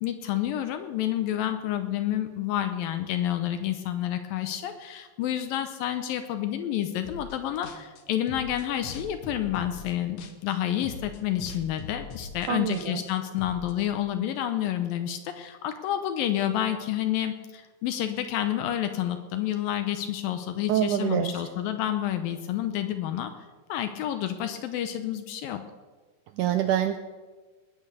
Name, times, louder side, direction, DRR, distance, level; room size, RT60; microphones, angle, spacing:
voice 1, 0.0-23.3 23.7-25.6, left 11 dB, 80° left, 8 dB, 2.4 m, -29 dB
sound 1, 7.0-7.4 7.6-10.6 10.8-13.7, left 4 dB, 60° left, 2.1 m, -41 dB
voice 2, 12.5-13.0 20.7-21.4 26.4-27.0, right 11 dB, 90° right, 8 dB, 1.8 m, -25 dB
19.5 x 8.7 x 6.8 m, 1.3 s
omnidirectional pair, 4.3 m